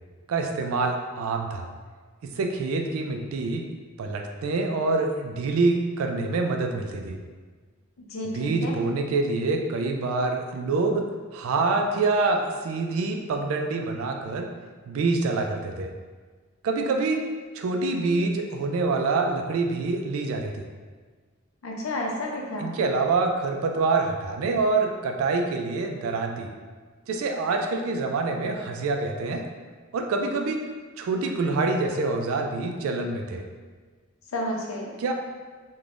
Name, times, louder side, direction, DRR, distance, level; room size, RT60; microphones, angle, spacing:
voice 1, 0.3-1.7 2.2-3.6 4.0-7.2 8.3-14.5 14.9-15.9 16.6-17.3 17.5-20.7 22.6-26.5 27.1-29.4 29.9-30.6 31.0-33.5 35.0-35.1, right 3 dB, 75° right, 3 dB, 0.3 m, -26 dB
voice 2, 8.1-8.7 21.6-22.7 34.3-34.9, left 1 dB, 70° left, -1 dB, 0.5 m, -31 dB
3.3 x 2.2 x 2.5 m, 1.5 s
head